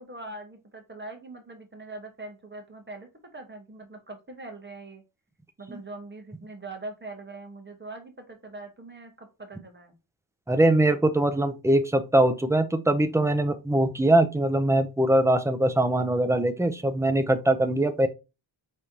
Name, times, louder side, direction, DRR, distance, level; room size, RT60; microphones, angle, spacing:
voice 1, 0.0-5.0 5.6-9.9, right 2 dB, 25° right, 1.3 m, -42 dB
voice 2, 10.5-18.1, right 1 dB, 5° right, 0.5 m, -22 dB
5.2 x 3.3 x 2.8 m
wide cardioid pair, 120°, 47 cm